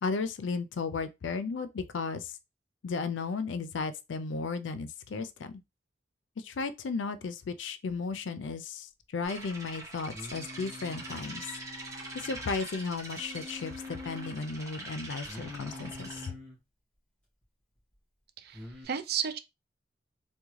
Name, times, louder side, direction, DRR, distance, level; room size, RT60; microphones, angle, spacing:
voice 1, 0.0-2.3 2.8-5.5 6.4-11.5 12.1-16.4, left 4 dB, 70° left, 0.4 m, -35 dB
sound 1, 9.2-16.3, right 2 dB, 15° right, 1.0 m, -44 dB
Singing, 10.1-12.6 13.2-14.4 15.3-16.6 18.5-18.9, left 2 dB, 5° left, 1.7 m, -45 dB
voice 2, 18.4-19.4, right 7 dB, 60° right, 0.5 m, -33 dB
3.5 x 2.2 x 3.1 m
head